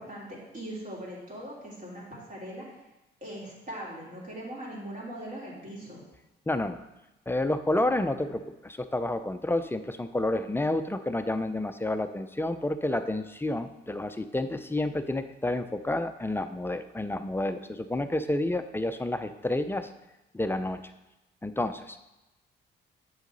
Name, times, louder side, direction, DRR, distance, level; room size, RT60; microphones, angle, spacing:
voice 1, 0.0-2.8 3.2-6.0, right 1 dB, 40° right, -5 dB, 3.2 m, -40 dB
voice 2, 6.5-6.8 7.3-19.9 20.3-20.8 21.4-22.1, left 1 dB, 10° left, 9 dB, 0.5 m, -30 dB
8.1 x 6.4 x 3.9 m, 0.99 s
cardioid pair, 90°, 20 cm